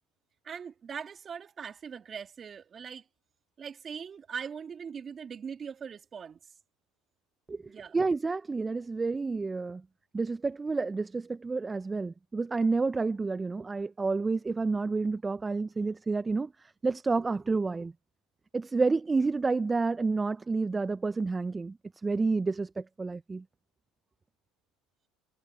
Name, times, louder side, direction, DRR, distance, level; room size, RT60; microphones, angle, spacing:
voice 1, 0.4-3.1 3.6-6.4 7.6-8.0, right 7 dB, 35° right, 2.1 m, -41 dB
voice 2, 7.9-9.8 10.1-16.5 16.8-17.9 18.5-21.8 22.0-23.4, right 3 dB, 20° right, 0.6 m, -29 dB
hypercardioid pair, 85°, 0 cm